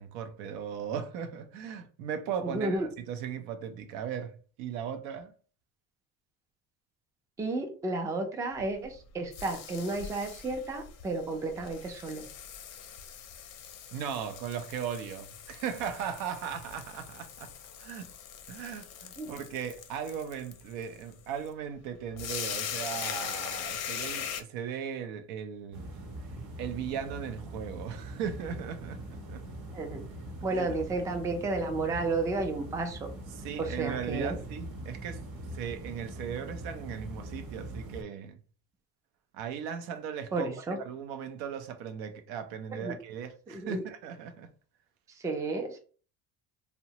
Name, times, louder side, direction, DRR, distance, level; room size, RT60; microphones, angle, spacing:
voice 1, 0.0-4.3 4.6-5.3 13.9-17.5 17.8-18.1 18.5-25.9 26.2-26.3 26.6-29.4 30.5-30.7 33.3-35.2 35.5-38.4 39.3-44.5, right 8 dB, 80° right, 0.6 m, -37 dB
voice 2, 2.5-2.9 7.4-12.3 19.2-19.3 29.7-30.0 30.4-33.1 33.6-34.4 40.3-40.8 42.8-43.0 43.5-43.8 45.2-45.8, right 2 dB, 10° right, 0.3 m, -32 dB
sound 1, 8.5-24.4, left 8 dB, 45° left, 0.5 m, -41 dB
sound 2, 25.7-38.0, right 1 dB, 55° right, 0.9 m, -42 dB
2.8 x 2.1 x 2.8 m
cardioid pair, 130°, 35 cm